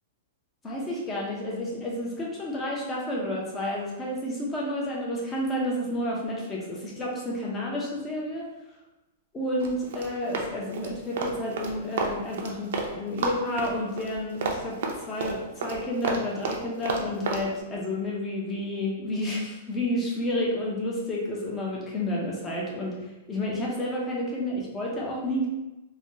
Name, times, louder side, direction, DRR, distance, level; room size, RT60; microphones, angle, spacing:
voice 1, 0.6-8.4 9.3-14.8 15.1-25.5, left 1 dB, 15° left, -4 dB, 0.7 m, -30 dB
Run, 9.6-12.9 13.2-17.4, right 4 dB, 65° right, 0.5 m, -31 dB
3.3 x 2.2 x 2.7 m, 1.0 s
hypercardioid pair, 150°, 0 cm